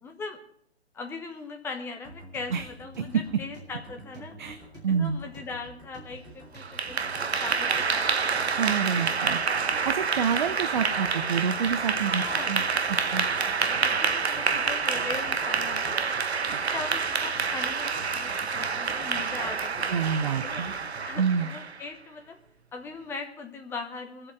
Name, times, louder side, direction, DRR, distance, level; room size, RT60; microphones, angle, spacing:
voice 1, 0.0-0.4 0.9-4.3 4.9-7.1 7.4-8.5 8.8-9.8 10.5-10.6 12.1-12.6 12.8-16.0 16.5-19.9 20.4-20.7 21.0-22.4 22.7-24.3, left 4 dB, 5° left, 4 dB, 1.0 m, -40 dB
sound 1, 2.0-21.2, right 1 dB, 10° right, 4.5 m, -47 dB
voice 2, 4.8-5.2 8.6-9.4 9.7-12.6 13.1-13.3 16.5-16.6 19.9-20.7 21.2-21.5, right 6 dB, 45° right, 11 dB, 0.8 m, -27 dB
Clapping / Applause, 6.6-21.8, right 5 dB, 75° right, 1.0 m, -28 dB
23.0 x 7.8 x 4.6 m, 0.67 s
figure-of-eight pair, 135°, 33 cm